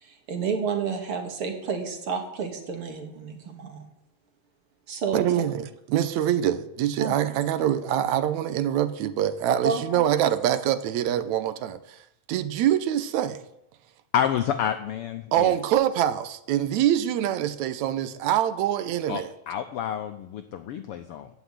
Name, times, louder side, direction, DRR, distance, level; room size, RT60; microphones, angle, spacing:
voice 1, 0.0-3.8 4.9-5.2 7.0-7.1 9.5-10.1, right 5 dB, 50° right, 2.7 m, -30 dB
voice 2, 5.1-13.4 15.3-19.3, right 11 dB, 80° right, 2.1 m, -25 dB
voice 3, 14.1-15.5 19.1-21.3, left 9 dB, 80° left, 1.3 m, -29 dB
15.5 x 6.4 x 10.0 m
omnidirectional pair, 3.3 m